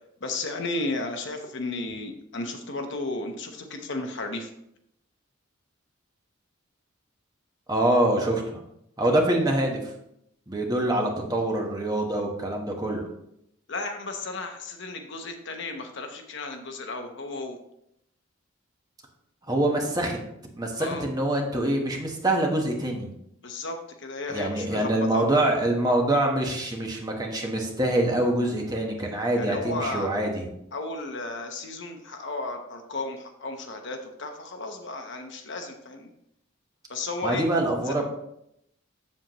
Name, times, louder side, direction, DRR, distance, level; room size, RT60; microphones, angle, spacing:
voice 1, 0.2-4.5 13.7-17.6 20.8-21.1 23.4-25.3 29.4-30.1 30.7-36.1 36.9-37.4 37.9-38.0, left 2 dB, 60° left, 4 dB, 0.9 m, -34 dB
voice 2, 7.7-8.6 9.0-9.8 10.5-13.0 19.5-20.2 20.6-23.1 24.3-30.4 37.2-38.0, right 1 dB, 20° right, 0 dB, 1.2 m, -25 dB
7.6 x 7.3 x 3.0 m, 0.77 s
head